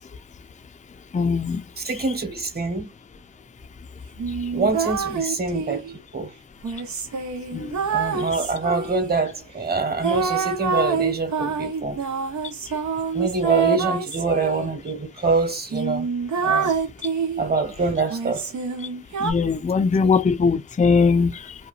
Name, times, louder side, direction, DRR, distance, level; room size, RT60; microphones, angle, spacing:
voice 1, 1.1-1.6 7.5-7.8 19.2-21.5, left 5 dB, 25° left, 0.5 m, -20 dB
voice 2, 1.8-2.9 4.5-6.3 7.9-12.0 13.1-16.1 16.4-16.7 17.4-18.5, right 3 dB, 35° right, 1.2 m, -25 dB
sound 1, 4.2-5.9 6.6-9.2 10.0-14.7 15.3-15.4 15.7-17.5 18.1-19.3, right 6 dB, 80° right, 0.8 m, -26 dB
2.9 x 2.2 x 2.3 m
cardioid pair, 45°, 29 cm